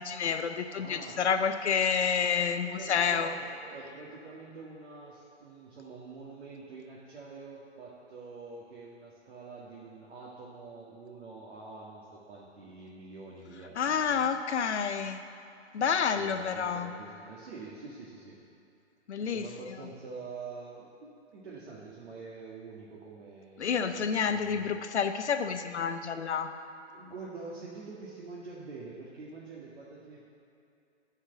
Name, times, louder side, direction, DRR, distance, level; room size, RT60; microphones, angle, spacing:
voice 1, 0.0-3.3 13.8-15.2 15.7-16.9 19.1-19.4 23.6-26.5, left 6 dB, 70° left, 8 dB, 0.8 m, -29 dB
voice 2, 0.8-1.4 2.6-14.3 16.1-18.4 19.2-24.8 26.9-30.2, right 4 dB, 60° right, -5 dB, 1.9 m, -46 dB
11.5 x 4.8 x 6.8 m, 2.7 s
hypercardioid pair, 140°, 35 cm